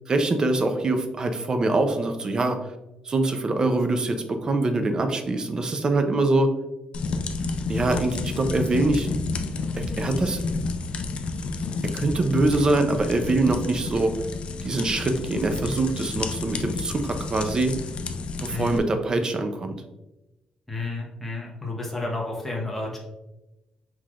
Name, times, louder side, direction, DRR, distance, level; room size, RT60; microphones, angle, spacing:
voice 1, 0.1-2.6 3.0-6.5 7.7-9.1 9.7-10.4 11.9-14.1 14.6-17.7 18.4-19.8, right 2 dB, 30° right, 6 dB, 0.5 m, -24 dB
sound 1, 6.9-18.8, left 3 dB, 50° left, 0.4 m, -30 dB
voice 2, 18.5-18.8 20.7-23.0, left 2 dB, 5° left, -2 dB, 1.1 m, -31 dB
5.7 x 3.1 x 2.4 m, 0.99 s
cardioid pair, 135°, 2 cm